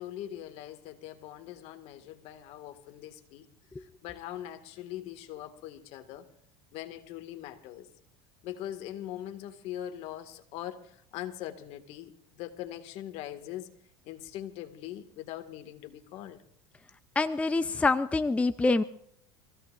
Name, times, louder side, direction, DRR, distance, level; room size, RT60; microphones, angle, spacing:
voice 1, 0.0-3.5 3.8-6.3 6.7-7.9 8.4-13.7 14.0-16.4, left 12 dB, 60° left, 7 dB, 1.9 m, -41 dB
voice 2, 17.2-18.8, left 3 dB, 10° left, 11 dB, 0.6 m, -25 dB
26.5 x 16.0 x 2.5 m, 0.67 s
supercardioid pair, 110°, 12 cm